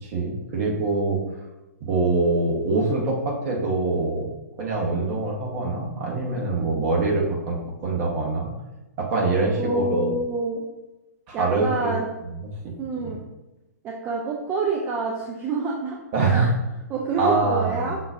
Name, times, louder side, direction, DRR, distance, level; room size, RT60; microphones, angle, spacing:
voice 1, 0.0-1.2 1.8-4.3 4.6-8.5 9.0-10.1 11.3-11.9 12.6-12.7 13.0-13.1 16.1-16.5 17.2-17.8, right 3 dB, 40° right, -2 dB, 1.1 m, -24 dB
voice 2, 9.6-10.6 11.3-12.1 12.8-13.2 13.8-16.0 16.3-16.5 16.9-18.0, right 3 dB, 20° right, -2 dB, 0.4 m, -27 dB
5.8 x 2.4 x 2.6 m, 1.0 s
figure-of-eight pair, 115°, 9 cm